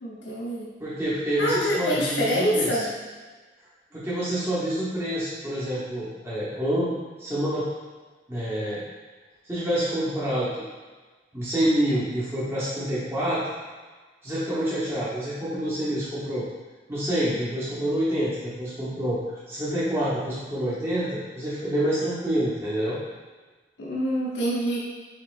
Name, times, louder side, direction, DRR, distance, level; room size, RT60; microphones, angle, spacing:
voice 1, 0.0-0.7 1.4-2.9 23.8-24.8, equal, 80° left, -6 dB, 0.7 m, -25 dB
voice 2, 0.8-2.9 3.9-6.9 7.2-7.7 8.3-8.8 9.5-10.6 11.3-13.4 14.2-16.5 16.9-19.2 19.5-23.0, equal, 15° right, -10 dB, 0.9 m, -27 dB
5.2 x 3.5 x 2.4 m, 1.3 s
head